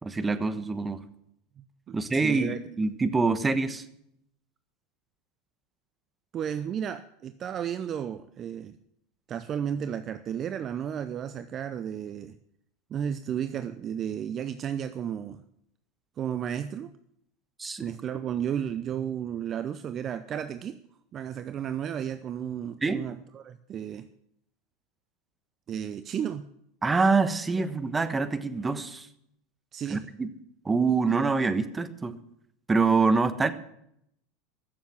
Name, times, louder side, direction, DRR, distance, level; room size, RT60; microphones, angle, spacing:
voice 1, 0.0-1.0 1.9-3.8 17.6-17.8 22.8-23.0 26.8-29.1 29.9-30.3 30.6-32.2 32.7-33.5, right 4 dB, 15° right, 12 dB, 1.3 m, -25 dB
voice 2, 1.6-2.6 6.3-8.8 9.3-12.4 12.9-15.4 16.2-16.9 17.8-20.8 21.1-24.1 25.7-26.5 29.7-30.1, right 9 dB, 35° right, 12 dB, 0.7 m, -33 dB
14.5 x 7.2 x 9.2 m, 0.74 s
hypercardioid pair, 90°, 0 cm